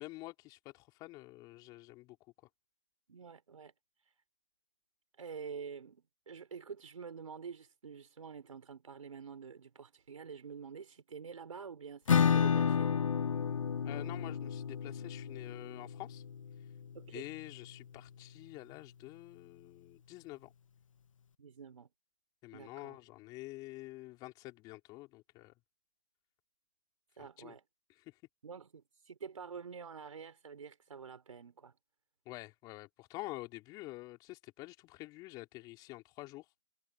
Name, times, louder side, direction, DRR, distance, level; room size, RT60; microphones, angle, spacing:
voice 1, 0.0-2.2 13.8-16.2 17.1-20.5 22.4-25.5 27.2-27.6 28.0-28.1 32.3-36.5, left 20 dB, 20° left, 3.8 m, -48 dB
voice 2, 3.1-3.7 4.0-4.1 5.2-12.9 16.9-17.2 21.4-21.9 22.5-23.0 27.2-27.6 28.4-31.8, right 6 dB, 70° right, 4.2 m, -48 dB
Acoustic guitar / Strum, 12.1-17.5, left 7 dB, 65° left, 1.1 m, -32 dB
figure-of-eight pair, 145°, 18 cm